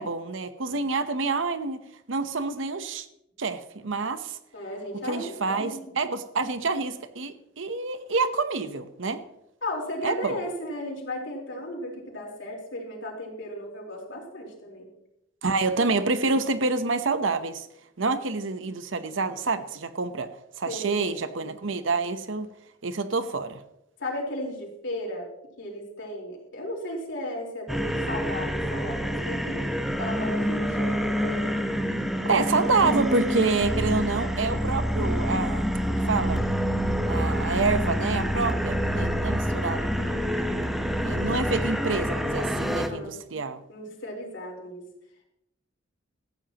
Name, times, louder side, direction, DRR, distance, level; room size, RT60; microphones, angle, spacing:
voice 1, 0.0-1.8 2.1-3.1 3.4-4.4 5.0-9.2 10.0-10.4 15.4-17.7 18.0-20.3 20.6-22.5 22.8-23.6 32.2-36.4 37.1-40.4 41.0-43.6, right 3 dB, 75° right, 10 dB, 0.9 m, -27 dB
voice 2, 4.5-5.7 6.0-6.1 9.6-14.9 20.7-21.1 24.0-25.3 25.6-31.5 35.8-36.3 42.7-43.2 43.7-44.8, left 1 dB, 65° left, -1 dB, 4.1 m, -35 dB
sound 1, 27.7-42.9, equal, ahead, 1.0 m, -27 dB
17.5 x 14.5 x 3.0 m, 0.82 s
head